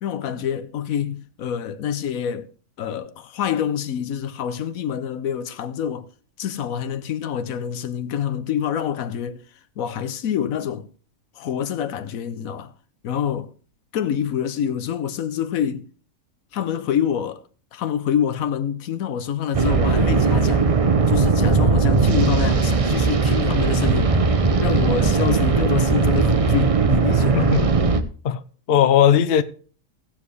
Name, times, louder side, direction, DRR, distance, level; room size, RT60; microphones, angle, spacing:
voice 1, 0.0-2.5 2.8-6.1 6.4-9.4 9.8-10.9 11.4-12.7 13.0-13.5 13.9-15.9 16.5-17.4 17.7-20.7 21.1-24.2 24.6-27.5, left 9 dB, 90° left, 1.2 m, -26 dB
sound 1, 19.5-28.0, right 4 dB, 35° right, 0.6 m, -18 dB
voice 2, 27.3-27.7 28.2-28.4 28.7-29.4, left 9 dB, 55° left, 0.8 m, -17 dB
17.0 x 7.3 x 3.2 m
omnidirectional pair, 1.4 m